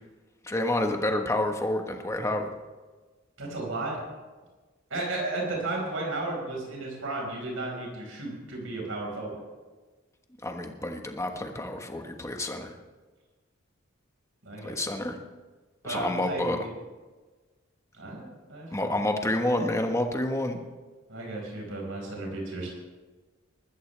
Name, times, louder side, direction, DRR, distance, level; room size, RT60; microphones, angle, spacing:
voice 1, 0.4-2.5 10.4-12.7 14.6-15.2 15.8-16.6 18.7-20.6, left 1 dB, 15° left, 4 dB, 1.3 m, -29 dB
voice 2, 3.4-4.0 4.9-9.4 14.4-14.8 15.8-16.7 18.0-18.9 21.1-22.7, right 2 dB, 80° right, -1 dB, 5.1 m, -34 dB
21.0 x 14.0 x 3.4 m, 1.3 s
head